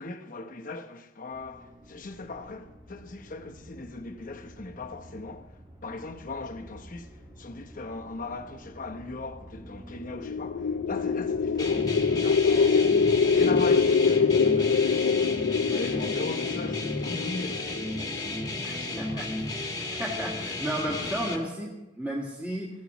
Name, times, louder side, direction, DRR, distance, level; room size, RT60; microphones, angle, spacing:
voice 1, 0.0-15.2 15.7-17.7 18.7-19.3, left 3 dB, 45° left, 0.9 m, -39 dB
sound 1, 1.3-13.7, equal, 25° right, 2.8 m, -49 dB
sound 2, 10.1-18.3, left 5 dB, 90° left, 0.4 m, -24 dB
sound 3, 11.6-21.4, left 2 dB, 20° left, 1.4 m, -33 dB
voice 2, 15.6-16.2 18.6-19.3 19.9-22.7, right 1 dB, 10° right, 1.8 m, -34 dB
19.0 x 15.0 x 3.1 m
head